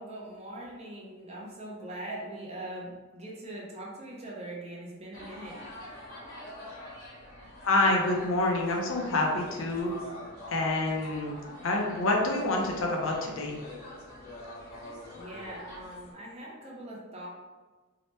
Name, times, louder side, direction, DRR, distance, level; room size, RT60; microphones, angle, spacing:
voice 1, 0.0-5.6 15.1-17.3, right 1 dB, 30° right, -4 dB, 0.5 m, -41 dB
sound 1, 5.1-16.1, left 1 dB, 40° left, 0.8 m, -45 dB
voice 2, 7.6-9.9 10.5-11.3 11.6-13.6, left 2 dB, 65° left, 0 dB, 0.5 m, -27 dB
2.8 x 2.1 x 3.1 m, 1.3 s
head